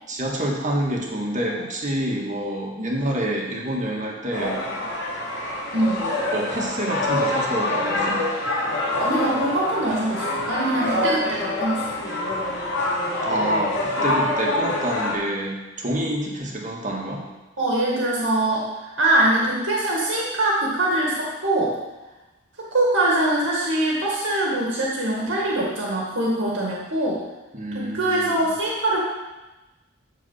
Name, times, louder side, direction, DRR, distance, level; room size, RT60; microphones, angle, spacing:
voice 1, 0.1-4.6 6.3-8.2 13.3-17.2 27.5-28.4, right 1 dB, 40° right, -1 dB, 1.9 m, -27 dB
sound 1, 4.3-15.1, left 1 dB, 60° left, 3.0 m, -25 dB
voice 2, 9.0-12.0 17.6-21.7 22.6-27.2 27.7-29.0, right 1 dB, 65° right, -3 dB, 2.1 m, -23 dB
14.0 x 4.7 x 5.7 m, 1.1 s
head